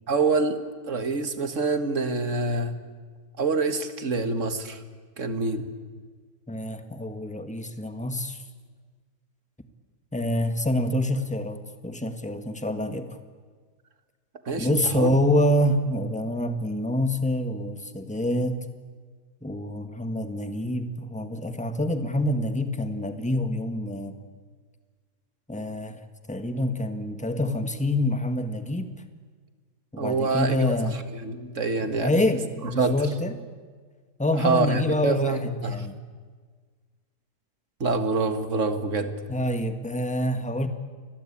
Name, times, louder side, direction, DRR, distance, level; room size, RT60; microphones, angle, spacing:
voice 1, 0.1-0.6 0.9-2.8 3.4-4.8 5.2-5.7 14.5-15.1 30.0-32.1 32.6-33.0 34.4-35.9 37.8-39.1, right 3 dB, 50° right, 9 dB, 2.0 m, -26 dB
voice 2, 6.5-8.4 10.1-13.2 14.6-18.6 19.4-24.2 25.5-26.0 26.3-28.9 29.9-31.0 31.8-33.5 34.2-35.9 39.3-40.7, left 1 dB, 5° left, 8 dB, 1.5 m, -26 dB
28.5 x 22.0 x 8.7 m, 1.5 s
omnidirectional pair, 1.7 m